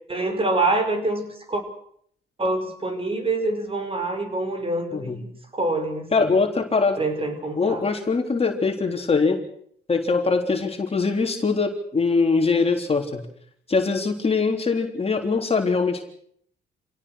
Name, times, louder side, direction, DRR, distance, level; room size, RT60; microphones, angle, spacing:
voice 1, 0.1-1.6 2.4-5.2 5.5-6.3 7.0-7.8, right 2 dB, 30° right, 7 dB, 5.6 m, -26 dB
voice 2, 4.9-5.2 6.1-7.0 7.6-9.4 9.9-13.3 13.7-16.0, left 4 dB, 30° left, 3 dB, 3.7 m, -22 dB
27.5 x 17.5 x 6.5 m, 0.65 s
cardioid pair, 90°, 20 cm